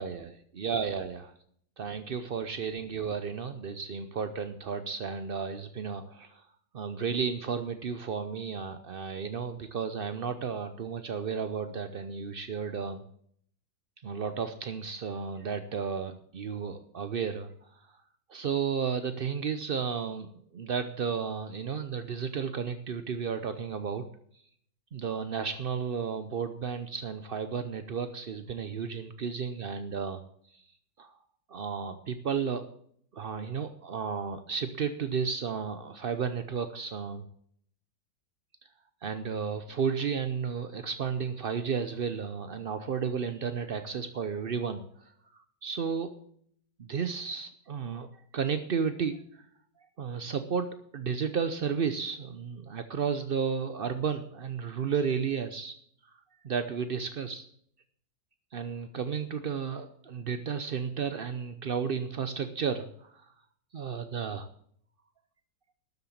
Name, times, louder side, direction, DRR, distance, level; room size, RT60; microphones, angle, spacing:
voice 1, 0.6-1.3 1.8-6.4 6.7-13.0 14.0-17.5 18.3-24.1 24.9-30.2 30.5-30.6 31.0-31.1 31.5-32.6 33.1-37.2 39.0-44.8 45.6-46.1 46.8-48.1 48.3-49.4 50.0-55.7 56.4-57.5 58.5-63.3 63.7-64.5, right 6 dB, 65° right, 10 dB, 0.5 m, -33 dB
13.0 x 7.9 x 7.3 m, 0.64 s
omnidirectional pair, 2.0 m